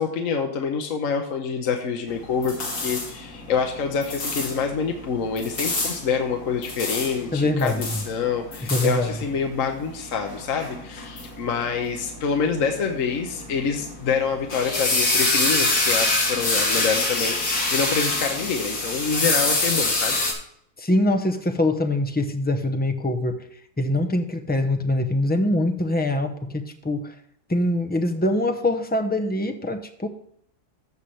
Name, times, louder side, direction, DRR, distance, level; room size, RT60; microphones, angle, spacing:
voice 1, 0.0-20.2, left 6 dB, 60° left, 4 dB, 1.3 m, -26 dB
sound 1, 2.1-20.3, left 2 dB, 75° left, 2.6 m, -27 dB
voice 2, 7.3-8.0 8.7-9.1 20.8-23.4 23.8-27.1 27.5-30.1, left 1 dB, 10° left, 6 dB, 0.4 m, -23 dB
15.0 x 5.8 x 3.2 m, 0.70 s
omnidirectional pair, 1.6 m